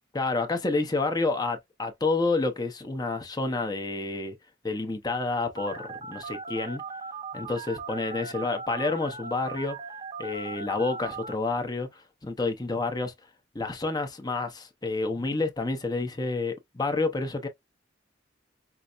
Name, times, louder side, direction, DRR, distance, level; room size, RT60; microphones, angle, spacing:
voice 1, 0.1-4.4 4.6-6.8 7.3-9.8 10.2-13.1 13.5-17.5, left 3 dB, 20° left, 0.8 m, -29 dB
Telephone, 5.6-11.3, right 4 dB, 30° right, 0.8 m, -38 dB
5.6 x 2.1 x 2.4 m
head